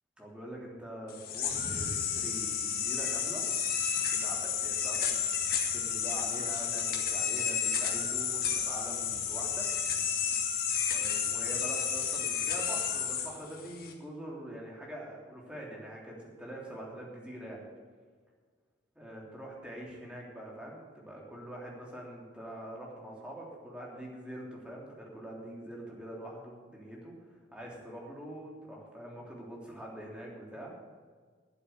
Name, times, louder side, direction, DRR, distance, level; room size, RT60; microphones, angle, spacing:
voice 1, 0.2-3.4 4.0-5.1 5.7-9.7 10.9-17.6 18.9-27.1 27.5-30.7, right 1 dB, 5° right, -4 dB, 3.3 m, -44 dB
sound 1, 1.1-13.9, left 7 dB, 55° left, 1.9 m, -31 dB
12.5 x 7.8 x 8.3 m, 1.5 s
head